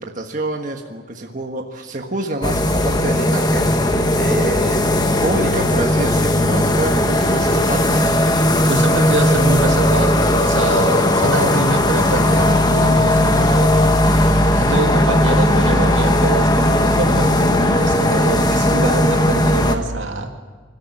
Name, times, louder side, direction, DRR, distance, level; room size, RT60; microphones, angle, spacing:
voice 1, 0.0-4.9 5.2-8.1, right 2 dB, 40° right, 2 dB, 1.5 m, -27 dB
sound 1, 2.4-19.8, left 1 dB, 20° left, 1.3 m, -16 dB
voice 2, 8.7-13.9 14.5-20.3, right 2 dB, 80° right, 3 dB, 2.5 m, -24 dB
26.5 x 13.0 x 9.4 m, 1.4 s
head